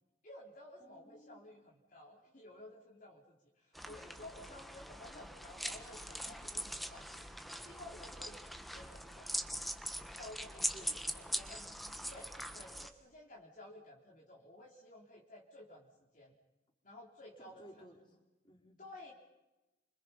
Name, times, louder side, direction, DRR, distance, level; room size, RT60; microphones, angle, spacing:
voice 1, 0.2-7.3 7.6-9.3 10.1-11.7 12.1-15.9 16.1-16.3 16.8-17.8 18.8-19.1, left 1 dB, 45° left, -1 dB, 3.5 m, -54 dB
voice 2, 0.8-1.5 3.9-4.1 10.5-11.1 11.4-12.2 17.4-18.2 18.4-18.8, equal, 25° left, 0 dB, 5.1 m, -59 dB
sound 1, 3.7-12.9, equal, ahead, 1.4 m, -42 dB
29.0 x 26.5 x 5.7 m, 1.0 s
head